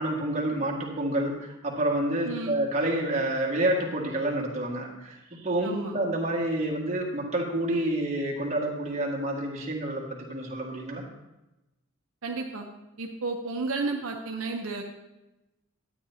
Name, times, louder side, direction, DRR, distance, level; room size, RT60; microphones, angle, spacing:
voice 1, 0.0-11.0, right 1 dB, 30° right, -2 dB, 1.8 m, -28 dB
voice 2, 2.2-2.6 5.6-6.0 12.2-12.7 13.0-14.8, right 3 dB, 70° right, 1 dB, 0.8 m, -32 dB
12.0 x 9.2 x 2.8 m, 0.99 s
head